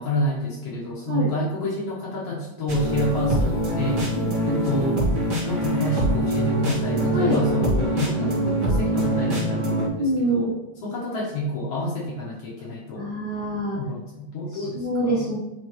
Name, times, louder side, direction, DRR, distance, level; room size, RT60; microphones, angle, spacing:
voice 1, 0.0-4.0 4.4-5.0 5.4-10.5 10.8-13.1 13.7-15.3, left 1 dB, 70° left, -2 dB, 1.5 m, -28 dB
sound 1, 2.7-9.9, right 1 dB, 35° right, 1.3 m, -24 dB
voice 2, 10.0-10.5 12.9-13.8 14.5-15.4, right 1 dB, 90° right, -6 dB, 0.8 m, -25 dB
9.4 x 3.4 x 3.0 m, 1.0 s
omnidirectional pair, 3.9 m